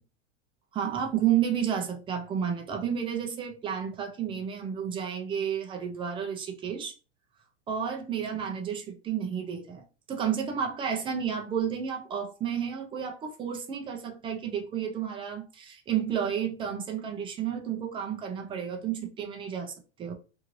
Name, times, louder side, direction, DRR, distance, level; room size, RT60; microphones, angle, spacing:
voice 1, 0.7-7.0 7.7-19.7 20.0-20.1, right 8 dB, 15° right, 0.4 m, -31 dB
2.7 x 2.6 x 3.0 m
supercardioid pair, 135°, 35 cm